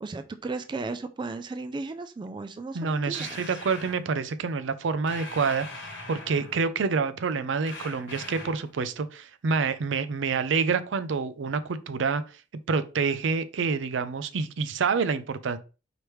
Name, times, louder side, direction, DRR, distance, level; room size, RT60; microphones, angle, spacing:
voice 1, 0.0-3.4, right 3 dB, 25° right, 0.3 m, -35 dB
voice 2, 2.7-12.2 12.7-15.6, right 5 dB, 85° right, 0.5 m, -27 dB
sound 1, 3.1-4.0 5.1-6.6 7.7-8.7, left 2 dB, 70° left, 1.1 m, -41 dB
4.9 x 3.1 x 3.1 m
head